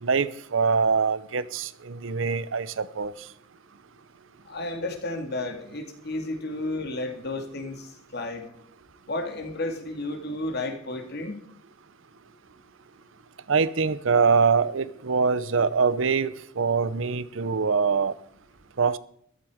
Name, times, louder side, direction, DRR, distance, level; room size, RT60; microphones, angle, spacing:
voice 1, 0.0-3.1 13.5-18.2 18.8-19.0, right 5 dB, 70° right, 0.7 m, -24 dB
voice 2, 4.5-7.9 8.1-8.5 9.1-11.4 17.4-17.5, left 2 dB, 55° left, 2.3 m, -32 dB
14.5 x 12.0 x 5.0 m
head